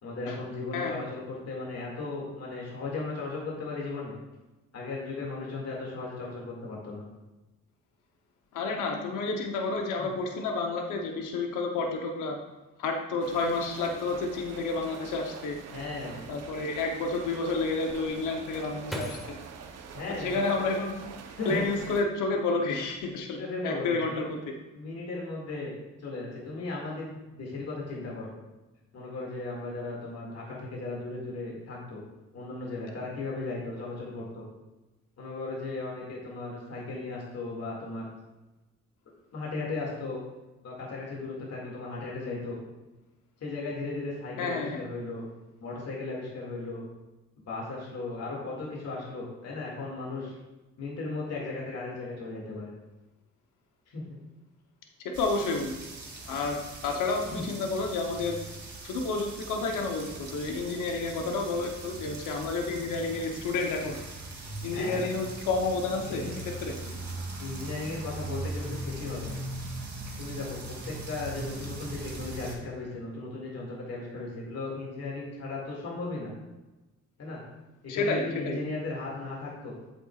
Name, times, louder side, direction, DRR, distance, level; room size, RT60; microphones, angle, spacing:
voice 1, 0.0-4.1 4.7-7.0 10.0-10.1 15.7-16.2 19.9-20.8 21.3-21.6 23.4-24.4 24.7-28.3 28.9-32.0 32.3-34.5 35.2-38.1 39.3-40.2 40.6-42.6 43.4-45.3 45.6-46.8 47.4-50.4 50.8-52.7 53.9-54.0 57.3-57.4 64.7-65.1 66.1-66.2 67.4-69.4 70.2-76.3 77.2-77.4 77.8-79.8, left 3 dB, 55° left, -3 dB, 2.3 m, -36 dB
voice 2, 8.5-12.4 12.8-15.6 16.3-19.4 20.2-21.0 21.5-24.6 44.4-44.8 55.0-55.8 56.3-58.4 58.8-64.0 64.6-66.2 66.6-66.7 77.9-78.6, left 3 dB, 85° left, 3 dB, 0.9 m, -30 dB
sound 1, 13.2-22.0, right 6 dB, 55° right, 0.9 m, -45 dB
sound 2, 18.9-21.0 21.5-22.3 22.6-23.0, right 1 dB, ahead, 1.3 m, -43 dB
sound 3, 55.1-72.6, right 2 dB, 35° right, 2.1 m, -40 dB
8.1 x 7.8 x 2.4 m, 1.1 s
cardioid pair, 90°, 30 cm